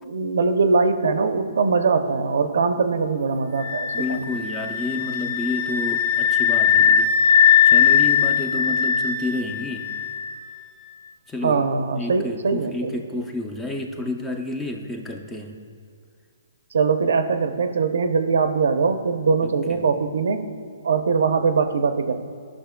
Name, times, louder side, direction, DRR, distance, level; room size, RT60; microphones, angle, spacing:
voice 1, 0.0-4.2 11.4-13.2 16.7-20.5 20.8-22.3, right 4 dB, 75° right, 9 dB, 0.6 m, -22 dB
sound 1, 3.6-10.4, left 8 dB, 40° left, 0.8 m, -20 dB
voice 2, 3.9-7.2 7.6-9.9 11.3-11.7 12.0-15.5 19.4-19.5, left 2 dB, 10° left, 3 dB, 0.5 m, -30 dB
14.0 x 5.9 x 2.2 m, 2.1 s
hypercardioid pair, 160°, 0 cm